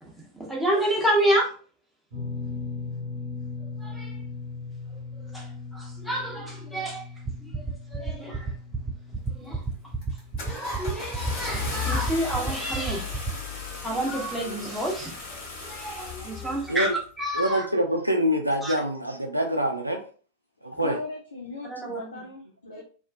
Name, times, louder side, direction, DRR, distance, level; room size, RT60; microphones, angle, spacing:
voice 1, 0.0-1.5 3.8-4.1 5.3-5.5 5.7-7.0 7.4-8.5 9.3-9.6 10.4-13.1 13.8-16.9 17.2-17.7 18.6-18.7 21.7-22.2 22.7-22.8, right 1 dB, ahead, -3 dB, 0.8 m, -29 dB
sound 1, 2.1-14.4 14.6-14.9 16.5-16.6, left 4 dB, 50° right, 0.9 m, -40 dB
sound 2, 7.3-13.3, right 4 dB, 20° right, 0.5 m, -29 dB
Car / Engine starting, 9.2-9.6 10.0-17.0, left 5 dB, 45° left, 0.9 m, -35 dB
voice 2, 17.3-20.0 20.6-21.0, equal, 85° right, 2 dB, 0.4 m, -25 dB
voice 3, 20.8-22.8, left 3 dB, 75° left, 0 dB, 0.4 m, -38 dB
2.4 x 2.3 x 2.4 m, 0.40 s
figure-of-eight pair, 90°, 0 cm